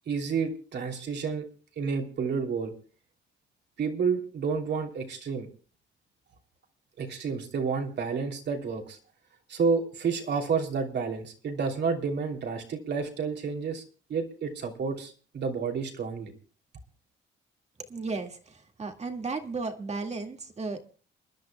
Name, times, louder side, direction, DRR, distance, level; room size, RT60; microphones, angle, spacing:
voice 1, 0.1-1.5 1.8-2.7 3.8-5.5 7.0-9.0 9.5-13.8 14.1-16.3, right 5 dB, 60° right, 2 dB, 3.0 m, -30 dB
voice 2, 17.9-20.8, right 3 dB, 35° right, 4 dB, 2.0 m, -34 dB
29.5 x 11.0 x 2.3 m, 0.39 s
cardioid pair, 90°, 20 cm